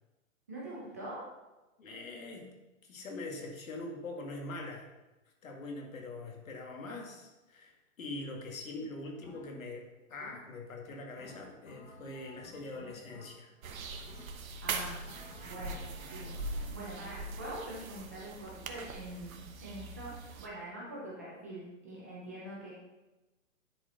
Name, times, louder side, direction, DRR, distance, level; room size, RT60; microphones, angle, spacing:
voice 1, 0.5-1.3 14.6-15.1 15.4-22.7, right 1 dB, 10° right, -7 dB, 0.6 m, -44 dB
voice 2, 1.8-2.5 2.8-4.9 5.4-13.5, left 2 dB, 80° left, 1 dB, 2.0 m, -43 dB
sound 1, 9.2-9.8 10.2-10.7 11.2-13.7 14.1-14.6 15.0-17.0, left 2 dB, 60° left, 1.7 m, -53 dB
sound 2, 13.6-20.5, right 3 dB, 90° right, 1.2 m, -41 dB
10.5 x 4.7 x 4.1 m, 1.1 s
hypercardioid pair, 180°, 40 cm